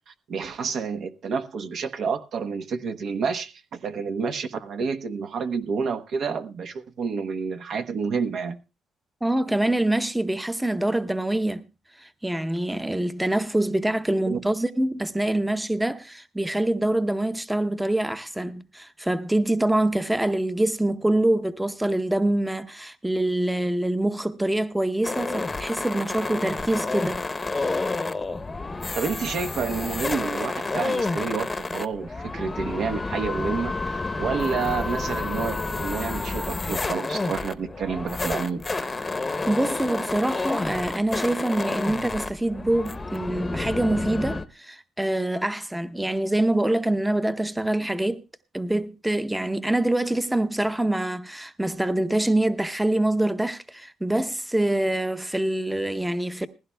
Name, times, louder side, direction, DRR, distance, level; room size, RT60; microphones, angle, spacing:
voice 1, 0.1-8.6 14.3-14.4 28.9-39.0, right 5 dB, 65° right, 1.0 m, -29 dB
voice 2, 9.2-11.6 12.0-27.2 39.5-48.2 48.5-56.5, right 1 dB, 5° right, 0.7 m, -25 dB
sound 1, 25.0-44.4, left 3 dB, 25° left, 0.8 m, -30 dB
19.5 x 15.5 x 2.3 m
cardioid pair, 90°, 0 cm